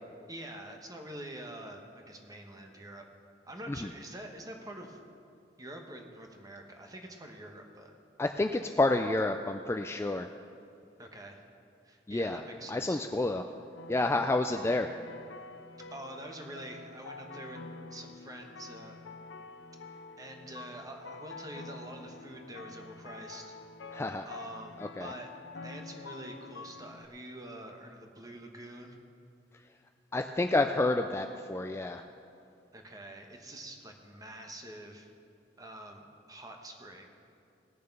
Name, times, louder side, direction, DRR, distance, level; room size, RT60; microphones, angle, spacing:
voice 1, 0.3-3.0 3.4-5.0 5.6-7.9 11.0-11.5 11.8-13.0 15.9-17.6 17.9-19.0 19.9-23.5 24.2-29.0 32.7-35.1 35.6-37.0, right 1 dB, 20° right, 3 dB, 1.1 m, -46 dB
voice 2, 8.2-10.3 12.1-12.4 12.7-13.4 13.9-14.9 23.9-24.2 24.8-25.1 30.1-32.0, left 2 dB, 15° left, 6 dB, 0.3 m, -29 dB
sound 1, 13.8-27.1, left 3 dB, 90° left, 0.5 m, -47 dB
18.0 x 6.7 x 5.3 m, 2.6 s
head